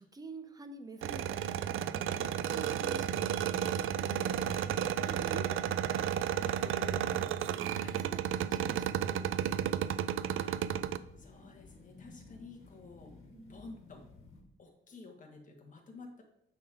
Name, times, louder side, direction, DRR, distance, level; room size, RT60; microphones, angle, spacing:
voice 1, 0.0-3.4 5.0-7.3 7.6-9.7 13.3-13.7, right 2 dB, 20° right, 7 dB, 0.6 m, -49 dB
sound 1, 1.0-11.0, right 10 dB, 75° right, 0.4 m, -32 dB
sound 2, 2.1-14.4, left 2 dB, 80° left, 1.5 m, -54 dB
voice 2, 3.9-4.7 5.9-6.1 6.4-6.6 7.7-8.0 10.3-10.6 11.2-13.1 13.5-14.0 14.6-16.2, left 3 dB, 40° left, 2 dB, 1.4 m, -51 dB
9.3 x 3.7 x 4.8 m, 0.77 s
wide cardioid pair, 180°, 21 cm